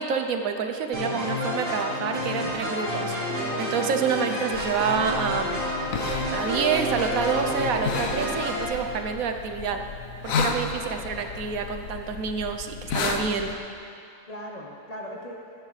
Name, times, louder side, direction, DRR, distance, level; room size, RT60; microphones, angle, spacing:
voice 1, 0.0-5.7 6.3-9.8 10.2-13.5, right 6 dB, 80° right, 6 dB, 1.2 m, -28 dB
sound 1, 0.9-8.7, left 1 dB, 60° right, 3.6 m, -30 dB
sound 2, 1.7-3.0 3.3-8.4, right 2 dB, 20° right, 1.0 m, -35 dB
sound 3, 4.5-13.6, left 5 dB, 75° left, 1.2 m, -33 dB
voice 2, 10.8-11.4 14.2-15.4, equal, 30° left, -1 dB, 1.1 m, -40 dB
15.0 x 11.0 x 3.3 m, 2.7 s
omnidirectional pair, 1.5 m